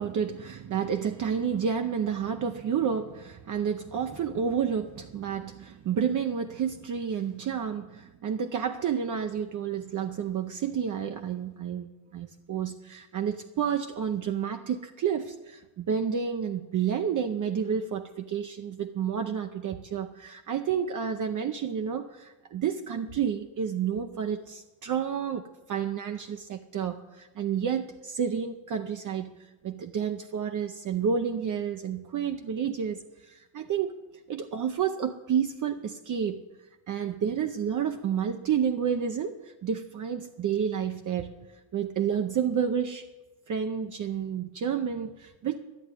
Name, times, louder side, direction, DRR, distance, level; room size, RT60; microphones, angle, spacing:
voice 1, 0.0-29.4 29.6-34.0 34.3-36.4 36.9-41.3 41.7-43.1 43.5-45.6, right 7 dB, 40° right, 6 dB, 0.7 m, -30 dB
11.5 x 8.7 x 9.7 m, 1.1 s
cardioid pair, 155°, 46 cm